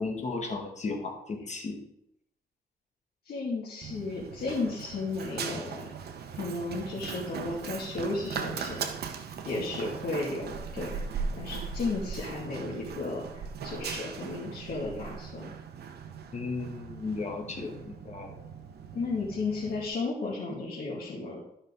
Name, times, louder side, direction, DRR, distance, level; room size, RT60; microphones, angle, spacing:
voice 1, 0.0-1.8 16.3-18.3, left 3 dB, 45° left, 2 dB, 2.0 m, -35 dB
voice 2, 3.2-5.9 6.3-8.8 9.4-13.2 13.6-15.5 18.9-21.4, left 3 dB, 70° left, -7 dB, 2.5 m, -34 dB
Run, 3.8-19.9, right 6 dB, 80° right, 0.9 m, -39 dB
12.5 x 5.7 x 3.6 m, 0.76 s
cardioid pair, 110°, 16 cm